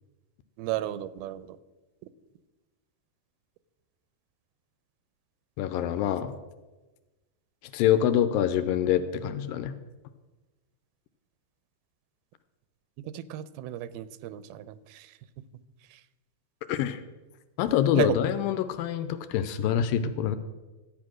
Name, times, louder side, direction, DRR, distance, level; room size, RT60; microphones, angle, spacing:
voice 1, 0.6-1.6 13.0-15.1 15.9-16.0 18.0-18.2, right 13 dB, 85° right, 16 dB, 2.5 m, -33 dB
voice 2, 5.6-6.3 7.7-9.7 16.7-17.0 17.6-20.4, left 10 dB, 85° left, 11 dB, 2.3 m, -25 dB
13.0 x 8.6 x 6.2 m, 1.2 s
omnidirectional pair, 4.3 m